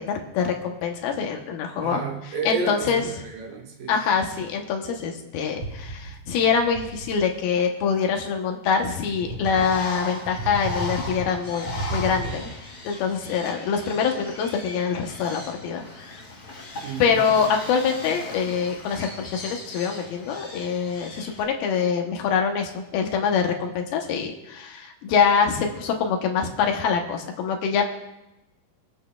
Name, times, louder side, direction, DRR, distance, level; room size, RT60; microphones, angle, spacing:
voice 1, 0.0-2.0 2.5-3.0 3.9-12.5 12.8-16.2 17.0-27.8, left 6 dB, 75° left, 3 dB, 2.7 m, -24 dB
voice 2, 1.8-4.0 16.8-17.2, right 4 dB, 65° right, 0 dB, 2.6 m, -31 dB
sound 1, 5.6-6.3 6.6-7.3 8.2-8.3 9.2-9.9 10.3-12.6, right 2 dB, 50° right, 3.1 m, -34 dB
Bird, 9.4-21.4, left 3 dB, 25° left, 2.0 m, -38 dB
25.5 x 8.6 x 2.3 m, 0.96 s
omnidirectional pair, 4.6 m